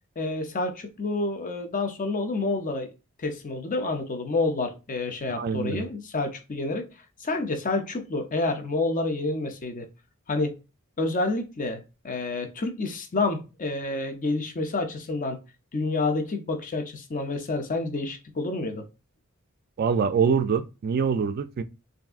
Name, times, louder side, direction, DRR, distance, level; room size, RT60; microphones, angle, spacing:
voice 1, 0.2-2.9 3.2-6.9 7.2-9.9 10.3-10.6 11.0-15.4 15.7-18.8, left 3 dB, 40° left, 0.5 m, -28 dB
voice 2, 5.3-5.9 19.8-21.6, right 6 dB, 45° right, 0.3 m, -25 dB
3.4 x 2.6 x 2.4 m
head